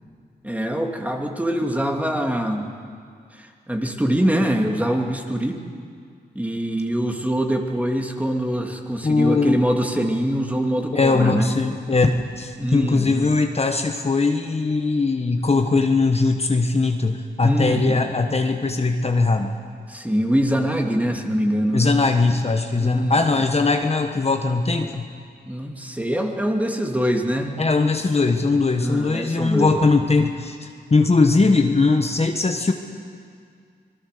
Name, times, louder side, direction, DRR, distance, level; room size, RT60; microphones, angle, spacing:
voice 1, 0.4-2.7 3.3-5.6 6.3-11.5 12.6-13.3 17.4-18.1 19.9-21.9 22.8-23.1 25.5-27.6 28.8-29.9, equal, 10° right, 2 dB, 2.7 m, -24 dB
voice 2, 9.0-9.6 10.9-19.5 21.7-25.0 27.6-32.7, left 3 dB, 35° left, 5 dB, 1.3 m, -20 dB
26.0 x 19.5 x 6.8 m, 2.2 s
cardioid pair, 70°, 18 cm